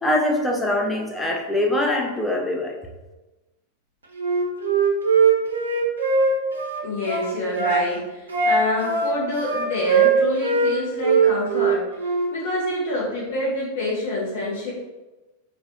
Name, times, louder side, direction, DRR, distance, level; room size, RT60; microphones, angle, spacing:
voice 1, 0.0-2.8, left 1 dB, 10° left, 0 dB, 0.4 m, -23 dB
Wind instrument woodwind instrument, 4.2-7.8 8.3-10.7 11.0-12.3, right 5 dB, 70° right, 0.4 m, -20 dB
voice 2, 6.8-11.8 12.3-14.7, left 1 dB, 55° left, -5 dB, 0.6 m, -27 dB
2.3 x 2.1 x 2.7 m, 1.1 s
figure-of-eight pair, 90°, 0 cm